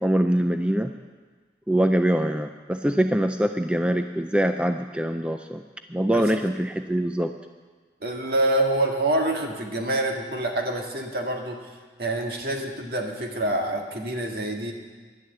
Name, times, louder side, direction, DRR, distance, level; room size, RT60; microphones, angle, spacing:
voice 1, 0.0-0.9 1.7-5.6 5.9-7.3, right 1 dB, 5° right, 7 dB, 0.3 m, -23 dB
voice 2, 8.0-11.6 12.0-14.7, right 1 dB, 55° right, 1 dB, 1.9 m, -26 dB
11.5 x 11.5 x 7.9 m, 1.4 s
head